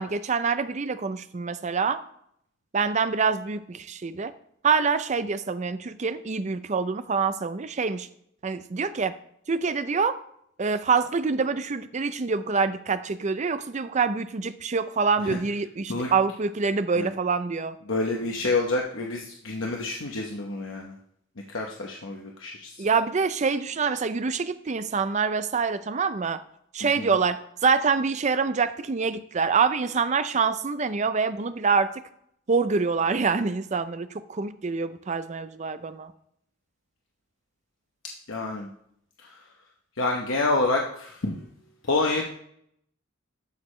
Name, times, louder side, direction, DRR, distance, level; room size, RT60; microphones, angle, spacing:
voice 1, 0.0-2.0 2.7-4.3 4.6-8.1 8.4-9.2 9.5-10.2 10.6-17.8 22.8-26.4 26.7-32.0 32.5-36.1, right 5 dB, 35° right, 12 dB, 0.5 m, -26 dB
voice 2, 17.9-20.9 21.5-22.7 26.8-27.1 38.3-38.7 39.2-39.3 40.0-41.4 41.8-42.2, left 2 dB, 75° left, 0 dB, 1.0 m, -28 dB
12.0 x 6.4 x 3.2 m, 0.71 s
head